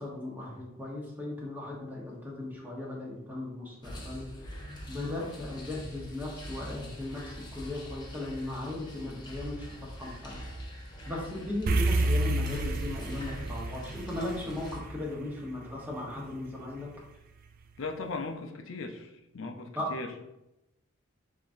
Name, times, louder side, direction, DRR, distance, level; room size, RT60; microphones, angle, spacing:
voice 1, 0.0-4.3 4.9-10.4 11.0-16.9 19.8-19.9, left 2 dB, 10° right, -3 dB, 1.0 m, -37 dB
sound 1, 3.8-14.8, equal, 20° left, 0.7 m, -42 dB
sound 2, 11.7-16.2, right 2 dB, 45° right, 0.3 m, -30 dB
voice 2, 17.8-20.1, left 3 dB, 65° left, 4 dB, 0.5 m, -38 dB
5.5 x 3.6 x 2.6 m, 0.90 s
head